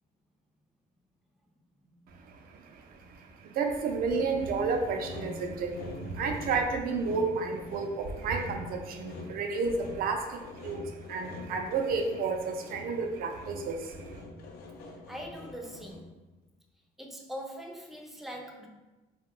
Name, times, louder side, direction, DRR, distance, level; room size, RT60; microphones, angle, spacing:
voice 1, 2.1-14.2, right 4 dB, 60° right, 4 dB, 0.4 m, -32 dB
Sawing, 4.1-16.2, left 2 dB, 75° left, 0.5 m, -45 dB
voice 2, 15.1-16.1 17.0-18.7, equal, ahead, 1 dB, 0.4 m, -42 dB
2.4 x 2.2 x 3.6 m, 1.1 s
cardioid pair, 110°, 17 cm